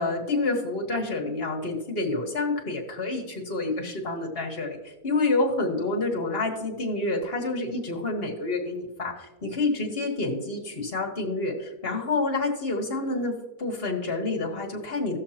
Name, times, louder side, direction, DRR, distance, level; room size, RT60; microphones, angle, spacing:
voice 1, 0.0-4.8 5.0-13.3 13.6-15.2, left 2 dB, 40° left, -1 dB, 1.8 m, -28 dB
17.5 x 6.6 x 2.9 m, 1.0 s
omnidirectional pair, 1.7 m